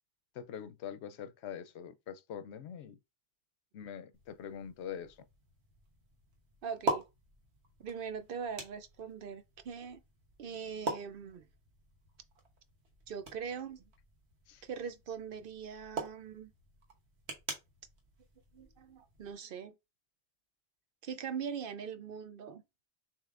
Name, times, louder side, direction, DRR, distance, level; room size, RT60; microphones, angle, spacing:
voice 1, 0.3-3.0 3.7-5.2 14.5-14.6, left 8 dB, 85° left, 0.9 m, -44 dB
sound 1, 4.1-19.3, right 2 dB, 80° right, 1.4 m, -44 dB
voice 2, 6.6-7.0 7.8-10.0 10.4-11.5 13.1-13.8 14.6-16.5 18.5-19.8 21.0-22.6, right 7 dB, 60° right, 0.7 m, -41 dB
6.4 x 3.2 x 2.4 m
omnidirectional pair, 1.1 m